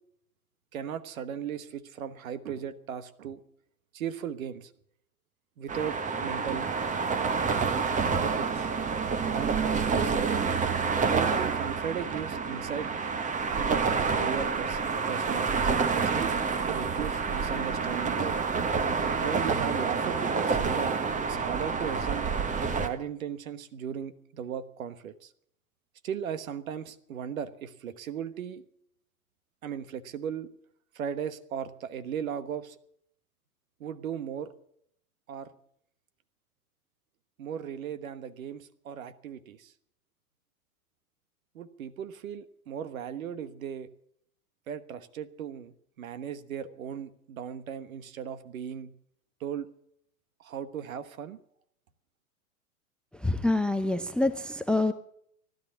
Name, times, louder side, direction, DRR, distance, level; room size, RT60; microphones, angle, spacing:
voice 1, 0.7-3.4 3.9-4.7 5.6-6.7 8.2-8.7 9.3-10.3 11.0-12.9 13.5-13.8 14.2-14.8 15.1-16.3 16.6-18.5 19.2-20.9 21.2-22.3 22.7-25.3 26.0-28.6 29.6-30.5 30.9-32.8 33.8-34.5 35.3-35.5 37.4-39.7 41.5-43.9 44.7-48.9 49.4-49.7 50.4-51.4, right 8 dB, 65° right, 13 dB, 1.4 m, -37 dB
sound 1, 5.7-22.9, right 5 dB, 15° right, 1.3 m, -28 dB
voice 2, 53.2-54.9, left 2 dB, ahead, 13 dB, 0.5 m, -26 dB
16.0 x 12.0 x 7.1 m, 0.69 s
figure-of-eight pair, 95°, 44 cm